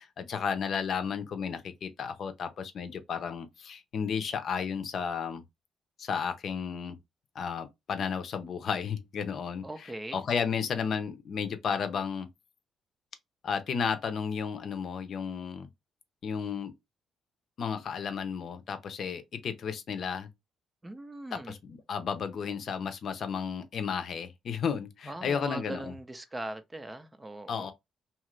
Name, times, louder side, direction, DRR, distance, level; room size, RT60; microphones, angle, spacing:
voice 1, 0.0-5.4 6.0-7.0 7.3-9.6 10.1-12.3 13.4-15.7 16.2-16.7 17.6-20.3 21.3-25.9 27.5-27.7, left 6 dB, 60° left, 0.6 m, -33 dB
voice 2, 9.6-10.2 20.8-21.6 25.1-27.7, right 1 dB, 15° right, 0.5 m, -40 dB
2.8 x 2.4 x 3.1 m
cardioid pair, 90°, 0 cm